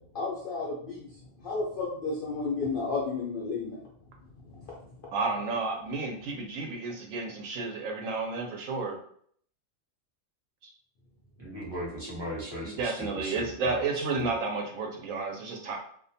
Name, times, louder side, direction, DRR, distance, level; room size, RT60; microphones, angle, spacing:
voice 1, 0.1-1.1 1.4-3.8 4.5-4.9, left 4 dB, 60° left, -4 dB, 0.5 m, -32 dB
voice 2, 5.1-9.0 10.6-10.7 12.8-15.8, right 3 dB, 80° right, 2 dB, 1.0 m, -31 dB
voice 3, 11.4-14.3, equal, 25° right, -5 dB, 0.8 m, -38 dB
2.4 x 2.2 x 2.6 m, 0.62 s
omnidirectional pair, 1.4 m